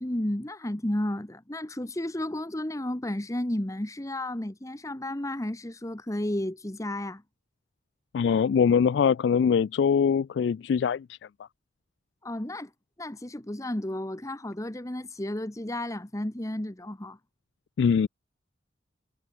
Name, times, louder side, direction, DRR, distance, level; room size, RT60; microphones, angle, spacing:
voice 1, 0.0-7.2 12.2-12.7 13.0-17.2, left 1 dB, 15° left, 1.0 m, -32 dB
voice 2, 8.1-11.2 17.8-18.1, left 6 dB, 70° left, 0.3 m, -23 dB
head